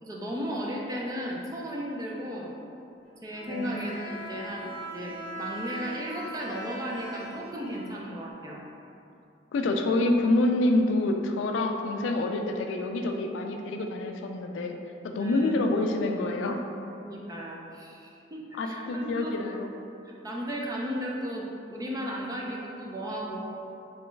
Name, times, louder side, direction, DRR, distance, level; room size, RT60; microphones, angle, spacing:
voice 1, 0.0-2.5 3.2-8.6 15.2-15.6 17.0-19.6 20.1-23.5, equal, 20° right, -2 dB, 0.4 m, -35 dB
Bowed string instrument, 3.3-8.3, right 1 dB, 65° right, 1.3 m, -40 dB
voice 2, 3.5-3.9 9.5-14.8 15.0-16.6 18.6-19.7, left 2 dB, 80° left, 4 dB, 0.3 m, -27 dB
3.3 x 3.0 x 3.1 m, 2.7 s
head